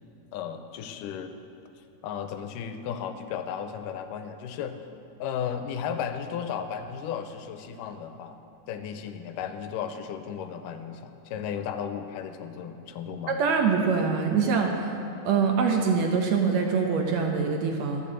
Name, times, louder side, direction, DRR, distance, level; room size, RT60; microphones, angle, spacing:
voice 1, 0.3-1.3 2.0-4.8 5.2-8.4 8.7-13.4, left 8 dB, 90° left, 8 dB, 2.3 m, -34 dB
voice 2, 13.3-14.8 15.2-18.0, right 5 dB, 70° right, 2 dB, 1.8 m, -24 dB
12.0 x 6.5 x 7.5 m, 2.6 s
omnidirectional pair, 3.7 m